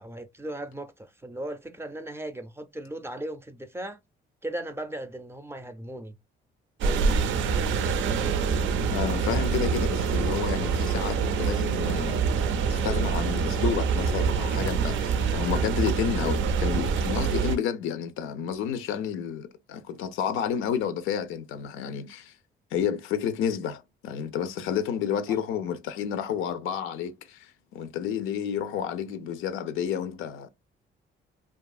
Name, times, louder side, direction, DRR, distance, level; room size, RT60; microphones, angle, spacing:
voice 1, 0.0-4.0 4.4-6.2 6.8-7.2 15.2-15.5 25.3-25.4, right 1 dB, 10° right, 0.4 m, -37 dB
sound 1, 6.8-17.6, right 5 dB, 75° right, 0.4 m, -26 dB
voice 2, 8.9-12.2 12.7-22.3 22.7-30.5, left 8 dB, 90° left, 0.5 m, -30 dB
2.6 x 2.4 x 2.3 m
cardioid pair, 90°, 20 cm